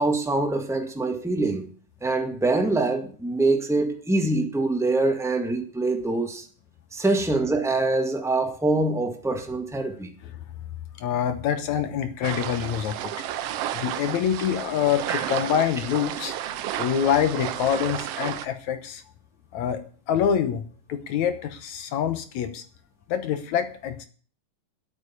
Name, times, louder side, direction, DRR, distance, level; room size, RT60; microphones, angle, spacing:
voice 1, 0.0-1.7 2.0-6.4 6.9-10.1 15.1-15.2, right 2 dB, 5° right, 0.5 m, -24 dB
voice 2, 11.0-13.3 13.7-19.0 19.5-19.8 20.1-20.6 20.9-22.6 23.1-24.1, left 9 dB, 70° left, 2.2 m, -26 dB
sound 1, 12.2-18.5, right 11 dB, 75° right, 1.5 m, -32 dB
10.0 x 8.6 x 8.5 m
omnidirectional pair, 3.7 m